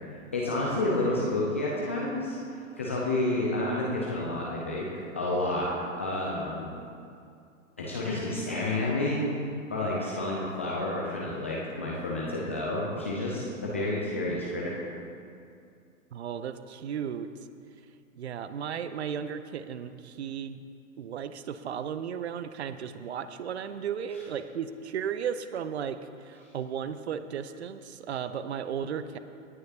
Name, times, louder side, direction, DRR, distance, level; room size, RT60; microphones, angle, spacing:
voice 1, 0.1-4.9 5.1-6.7 7.8-9.2 9.7-14.8 24.1-24.2, left 2 dB, 10° left, -5 dB, 0.3 m, -30 dB
voice 2, 16.1-17.3 18.2-20.6 21.0-26.0 26.3-29.2, right 8 dB, 55° right, 11 dB, 0.6 m, -35 dB
18.0 x 9.4 x 2.8 m, 2.4 s
figure-of-eight pair, 115°, 40 cm